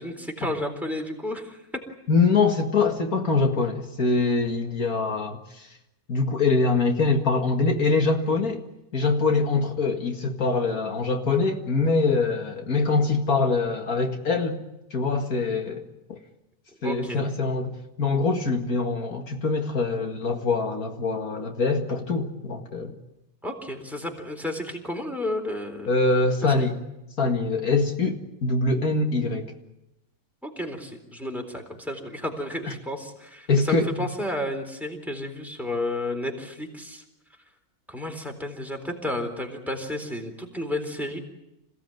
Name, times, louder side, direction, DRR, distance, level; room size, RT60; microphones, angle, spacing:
voice 1, 0.0-1.8 16.8-17.2 23.4-25.9 26.4-26.7 30.4-37.0 37.9-41.2, left 1 dB, ahead, 4 dB, 3.8 m, -32 dB
voice 2, 2.1-5.7 6.1-8.6 8.9-14.6 14.9-15.8 16.1-16.2 16.8-22.9 25.9-26.7 27.2-29.5 33.5-34.1, left 3 dB, 75° left, 3 dB, 2.4 m, -24 dB
27.0 x 17.0 x 9.2 m, 0.91 s
omnidirectional pair, 1.6 m